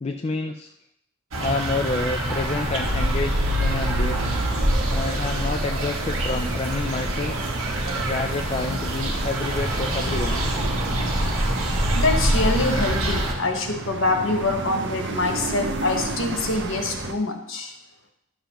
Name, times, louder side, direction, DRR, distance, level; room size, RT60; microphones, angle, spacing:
voice 1, 0.0-0.7 1.4-4.2 4.9-7.3 8.1-10.4, left 3 dB, 30° left, 3 dB, 0.3 m, -29 dB
sound 1, 1.3-13.3, right 1 dB, 70° right, 1.4 m, -25 dB
sound 2, 3.4-17.1, right 2 dB, 55° right, 0.8 m, -35 dB
voice 2, 11.9-17.7, left 2 dB, 60° left, 4 dB, 1.2 m, -25 dB
11.5 x 6.9 x 3.0 m, 0.77 s
head